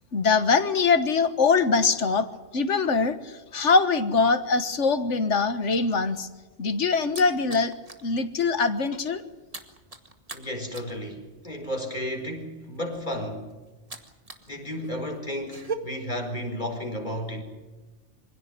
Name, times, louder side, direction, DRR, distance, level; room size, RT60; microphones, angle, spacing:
voice 1, 0.1-2.3 2.5-6.3 6.6-7.7 8.0-9.2, left 4 dB, 75° left, 1.8 m, -23 dB
sound 1, 6.3-8.1 8.5-8.7 8.9-14.5 14.8-15.8, right 5 dB, 30° right, 2.1 m, -40 dB
voice 2, 10.3-13.6 14.5-17.4, equal, 40° left, 4.7 m, -33 dB
25.5 x 17.0 x 9.6 m
omnidirectional pair, 1.2 m